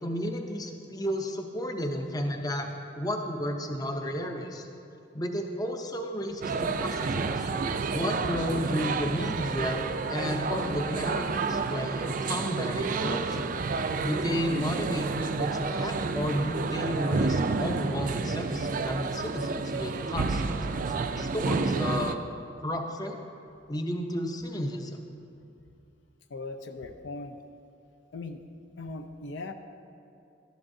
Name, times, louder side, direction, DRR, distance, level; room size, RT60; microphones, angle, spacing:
voice 1, 0.0-2.7 3.0-4.7 5.1-7.5 7.9-9.8 10.1-13.5 14.0-20.7 21.2-22.2 22.6-23.2 23.7-25.0, equal, 20° left, 4 dB, 0.7 m, -32 dB
sound 1, 6.4-22.2, right 4 dB, 45° right, 0.4 m, -30 dB
voice 2, 26.3-27.4 28.1-28.4 28.8-29.5, left 3 dB, 70° left, 6 dB, 0.5 m, -39 dB
13.0 x 11.0 x 2.7 m, 2.6 s
head